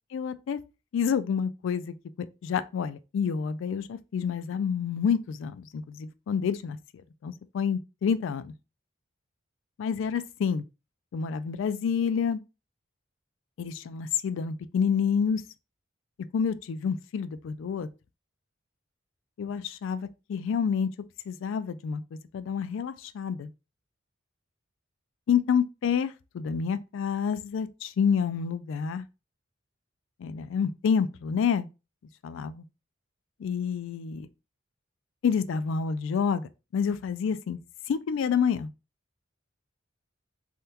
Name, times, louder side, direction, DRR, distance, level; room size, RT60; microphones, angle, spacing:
voice 1, 0.1-0.6 0.9-6.8 7.2-8.5 9.8-10.6 11.1-12.4 13.6-15.4 16.3-17.9 19.4-20.9 21.3-23.5 25.3-29.0 30.2-31.7 32.2-32.6 33.4-34.3 35.2-37.6 37.9-38.7, left 6 dB, 65° left, 0.3 m, -28 dB
3.5 x 2.2 x 2.8 m
head